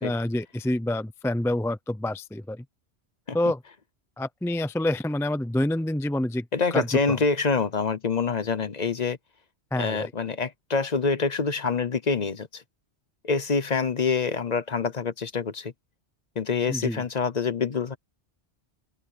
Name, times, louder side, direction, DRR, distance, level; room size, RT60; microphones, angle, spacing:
voice 1, 0.0-2.6 3.3-3.6 4.2-6.5 6.7-7.2 9.7-10.1 16.7-17.0, left 1 dB, 5° left, 0.3 m, -27 dB
voice 2, 6.5-9.2 9.8-12.6 13.2-15.7 16.4-18.0, left 4 dB, 40° left, 0.9 m, -26 dB
open air
omnidirectional pair, 1.2 m